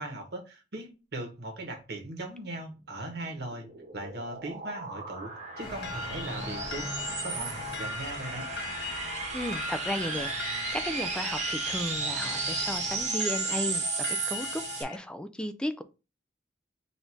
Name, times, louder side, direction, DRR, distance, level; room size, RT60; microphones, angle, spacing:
voice 1, 0.0-3.7 3.9-6.9 7.2-8.5, right 2 dB, 65° right, 1.2 m, -39 dB
sound 1, 3.1-14.8, right 4 dB, 40° right, 1.1 m, -34 dB
sound 2, 5.6-15.0, left 4 dB, 65° left, 0.6 m, -39 dB
sound 3, 5.6-13.1, left 1 dB, 30° left, 1.6 m, -45 dB
voice 2, 9.3-15.8, left 1 dB, 5° left, 0.4 m, -35 dB
4.1 x 2.6 x 4.5 m
head